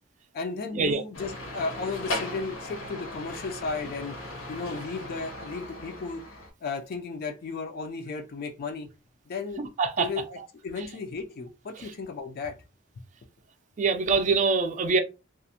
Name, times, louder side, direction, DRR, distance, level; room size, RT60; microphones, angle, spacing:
voice 1, 0.3-4.2 4.5-6.2 6.6-8.9 9.3-9.6 10.0-10.2 10.6-12.6, left 4 dB, 50° left, 0.3 m, -34 dB
sound 1, 1.1-6.5, left 1 dB, 80° left, 0.9 m, -37 dB
voice 2, 9.6-10.1 10.8-10.9 11.8-11.9 13.8-15.0, right 4 dB, 40° right, 0.4 m, -24 dB
2.4 x 2.0 x 2.7 m
head